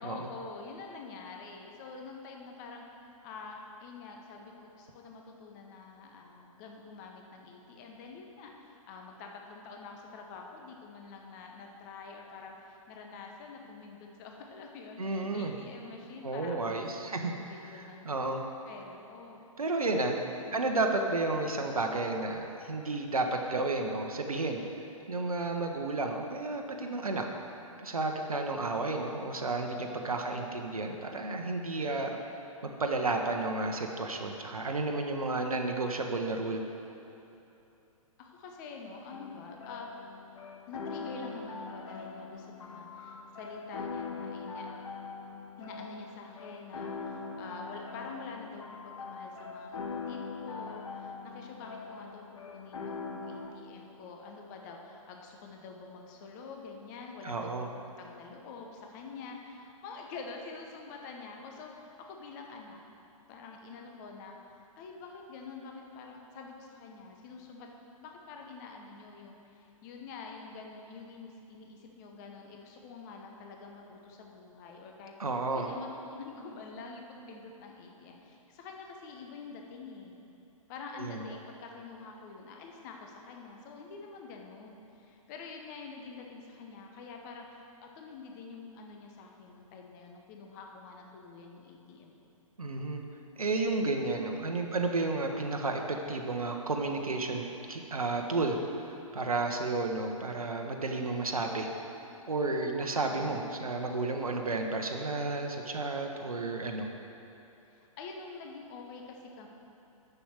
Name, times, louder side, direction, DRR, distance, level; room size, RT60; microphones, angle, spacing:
voice 1, 0.0-2.8 3.2-19.5 19.7-20.0 20.3-20.8 29.7-30.3 31.1-31.5 38.2-39.9 40.7-44.7 45.6-62.8 63.3-67.7 68.0-80.2 80.7-92.1 103.0-103.6 107.7-109.5, left 4 dB, 30° left, 1 dB, 0.9 m, -47 dB
voice 2, 15.0-15.5 16.2-17.3 17.7-18.4 19.6-20.2 20.5-24.6 25.1-27.2 27.8-32.2 32.8-36.6 57.2-57.7 75.2-75.7 81.0-81.2 92.6-93.0 93.4-101.7 102.3-106.9, right 2 dB, 75° right, 3 dB, 0.9 m, -32 dB
sound 1, 39.1-53.5, left 4 dB, 60° left, 1.1 m, -42 dB
7.0 x 6.9 x 7.4 m, 2.9 s
figure-of-eight pair, 120°, 18 cm